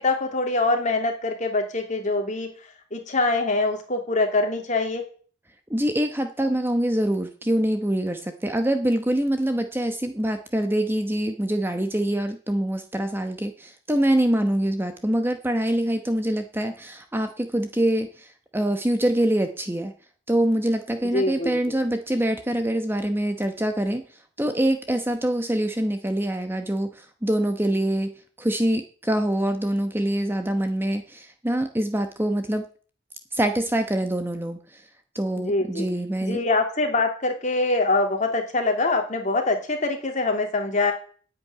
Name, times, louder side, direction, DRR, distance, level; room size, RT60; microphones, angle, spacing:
voice 1, 0.0-2.5 2.9-5.0 21.1-21.7 35.4-35.9 36.2-40.9, left 2 dB, 35° left, 4 dB, 2.8 m, -24 dB
voice 2, 5.7-19.9 20.3-28.1 28.4-32.6 33.3-34.9 35.1-36.4, right 1 dB, 10° right, 7 dB, 1.0 m, -25 dB
10.5 x 8.6 x 9.4 m, 0.42 s
head